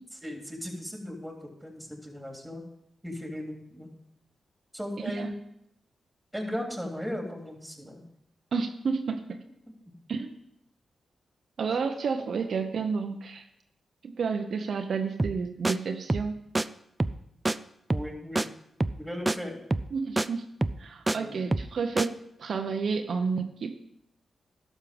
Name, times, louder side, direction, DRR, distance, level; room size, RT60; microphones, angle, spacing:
voice 1, 0.2-2.6 3.0-3.9 4.7-5.3 6.3-8.0 17.9-18.5 19.0-19.6 21.2-21.4, equal, 5° right, 1 dB, 3.3 m, -37 dB
voice 2, 5.0-5.3 8.5-9.4 10.1-10.4 11.6-13.5 14.0-16.4 19.9-23.8, right 5 dB, 70° right, 5 dB, 0.8 m, -31 dB
sound 1, 15.2-15.4 15.6-15.8 16.1-16.3 16.5-16.7 17.0-17.2 17.5-17.6 17.9-18.1 18.4-18.5 18.8-19.0 19.3-19.4 19.7-19.9 20.2-20.3 20.6-21.2 21.5-21.7 22.0-22.1, right 2 dB, 25° right, 0.4 m, -27 dB
12.0 x 6.4 x 5.2 m, 0.77 s
supercardioid pair, 45°, 0 cm